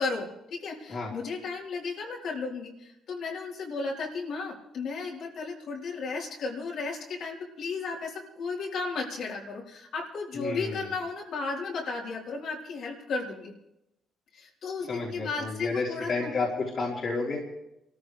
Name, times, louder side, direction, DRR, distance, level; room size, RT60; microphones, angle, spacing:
voice 1, 0.0-13.5 14.3-16.3, left 4 dB, 70° left, -3 dB, 4.2 m, -34 dB
voice 2, 10.3-10.9 14.9-17.4, left 3 dB, 50° left, -3 dB, 3.5 m, -31 dB
25.0 x 14.0 x 3.4 m, 0.86 s
cardioid pair, 90°, 0 cm